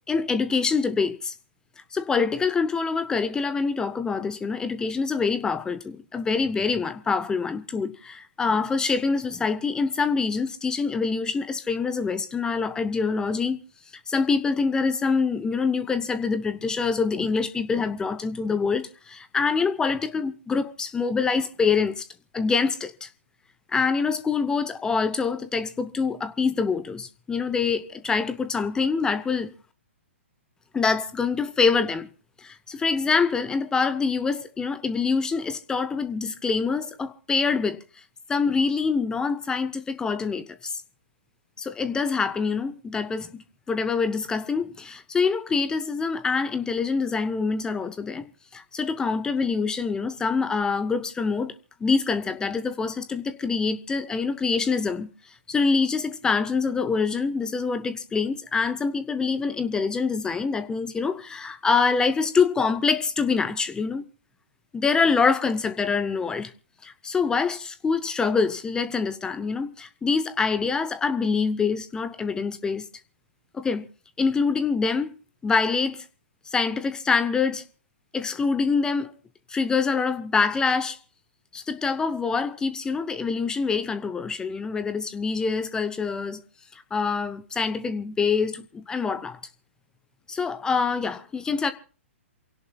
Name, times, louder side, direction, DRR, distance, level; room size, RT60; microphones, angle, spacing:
voice 1, 0.1-1.3 1.9-13.6 14.1-22.1 22.3-23.1 23.7-29.5 30.7-32.1 32.4-37.8 38.3-40.8 41.6-51.5 51.8-55.1 55.5-64.0 64.7-66.5 66.8-72.9 73.5-73.9 74.2-75.1 75.4-76.0 76.5-77.6 78.1-79.1 79.5-81.0 81.5-86.4 86.7-89.4 90.3-91.7, left 5 dB, 10° left, 0.8 m, -25 dB
28.0 x 17.0 x 2.3 m
figure-of-eight pair, 115°, 7 cm